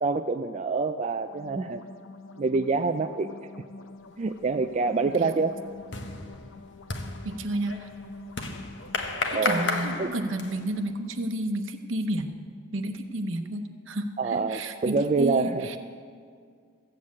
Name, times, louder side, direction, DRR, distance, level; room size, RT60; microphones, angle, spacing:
voice 1, 0.0-1.8 2.4-3.3 4.2-5.6 9.3-9.7 10.0-10.1 14.2-15.7, right 4 dB, 35° right, 7 dB, 0.3 m, -26 dB
sound 1, 1.2-9.1, left 2 dB, 75° left, 0.7 m, -46 dB
sound 2, 4.3-4.7 5.0-10.8, left 3 dB, 60° left, 1.1 m, -33 dB
voice 2, 7.2-7.9 9.3-12.4 12.7-15.8, right 1 dB, 70° right, 7 dB, 0.9 m, -31 dB
15.0 x 7.5 x 8.4 m, 2.1 s
head